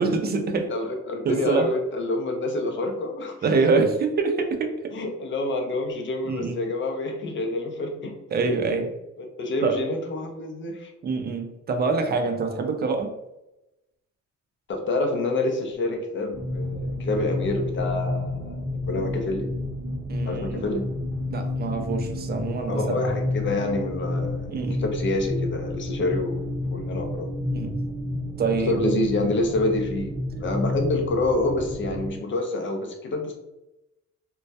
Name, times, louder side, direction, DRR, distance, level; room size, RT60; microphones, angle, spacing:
voice 1, 0.0-0.7 1.2-1.7 3.4-4.9 6.3-6.6 8.3-8.9 9.6-9.8 11.0-13.1 20.1-20.7 21.3-23.0 24.5-24.8 27.5-27.7 28.4-28.8, right 4 dB, 35° right, 5 dB, 0.4 m, -25 dB
voice 2, 0.7-3.4 4.9-8.1 8.4-8.5 9.2-10.9 14.7-19.5 20.2-20.9 22.7-27.3 28.7-33.3, left 2 dB, 40° left, 3 dB, 0.5 m, -27 dB
sound 1, 16.3-32.1, left 2 dB, 5° right, 0.8 m, -30 dB
2.2 x 2.1 x 2.7 m, 0.93 s
cardioid pair, 90°, 30 cm